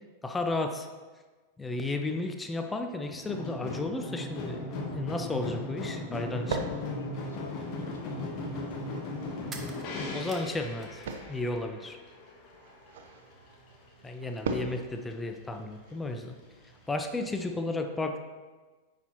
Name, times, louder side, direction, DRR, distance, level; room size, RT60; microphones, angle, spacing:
voice 1, 0.2-0.9 1.6-4.6 4.9-6.6 10.1-11.0 11.3-12.0 14.0-16.4 16.9-18.2, left 2 dB, 10° left, 5 dB, 0.5 m, -33 dB
sound 1, 3.1-13.1 13.3-14.1 14.5-14.6, left 2 dB, 40° left, 1.2 m, -38 dB
sound 2, 5.0-17.4, right 4 dB, 55° right, 0.6 m, -43 dB
voice 2, 6.3-9.0, left 5 dB, 70° left, 5 dB, 0.6 m, -45 dB
sound 3, 9.5-11.4 11.7-12.5, right 3 dB, 20° right, 0.8 m, -49 dB
9.5 x 4.1 x 3.0 m, 1.3 s
figure-of-eight pair, 90°, 0 cm